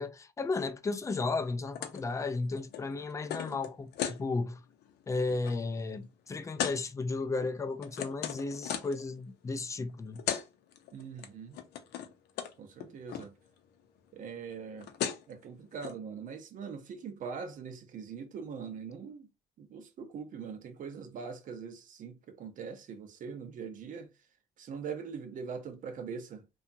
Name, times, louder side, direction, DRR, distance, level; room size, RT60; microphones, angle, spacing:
voice 1, 0.0-4.6 5.1-10.2, left 3 dB, 20° left, 0.4 m, -34 dB
sound 1, 1.8-2.0 2.3-4.2 4.7-4.9 5.2-5.5 6.6-6.8 7.4-9.0 9.9-10.0 10.2-10.5 10.7-11.3 11.5-12.1 12.4-12.5 12.8-13.3 14.5-14.6 14.8-15.3 15.8-15.9, left 9 dB, 75° left, 0.6 m, -36 dB
voice 2, 10.9-11.6 12.6-13.3 14.1-14.9 15.3-19.3 19.6-24.1 24.6-26.4, right 6 dB, 50° right, 0.6 m, -42 dB
2.8 x 2.3 x 2.6 m
cardioid pair, 110°, 17 cm